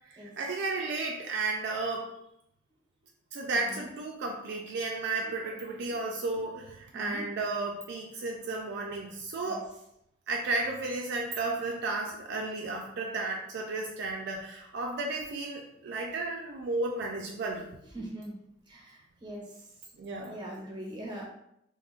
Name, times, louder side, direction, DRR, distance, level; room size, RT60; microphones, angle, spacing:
voice 1, 0.1-2.1 3.3-9.7 10.3-17.7 20.0-20.4, right 3 dB, 60° right, 0 dB, 0.3 m, -33 dB
voice 2, 6.9-7.2 9.4-9.6 17.9-18.3 18.7-19.6 20.3-21.2, right 1 dB, 25° right, -2 dB, 0.7 m, -41 dB
2.4 x 2.1 x 3.6 m, 0.79 s
head